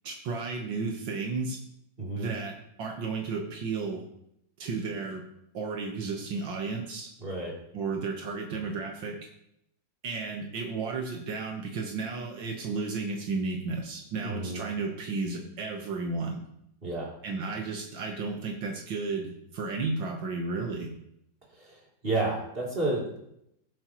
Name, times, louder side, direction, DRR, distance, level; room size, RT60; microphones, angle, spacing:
voice 1, 0.0-1.6 2.2-4.0 4.6-5.2 5.5-7.1 7.7-9.2 10.0-16.5 17.2-20.9, right 4 dB, 80° right, 1 dB, 2.0 m, -33 dB
voice 2, 2.0-2.3 7.2-7.6 14.2-14.6 16.8-17.1 21.6-23.2, right 2 dB, 30° right, -4 dB, 3.5 m, -31 dB
19.5 x 7.8 x 3.1 m, 0.78 s
omnidirectional pair, 2.0 m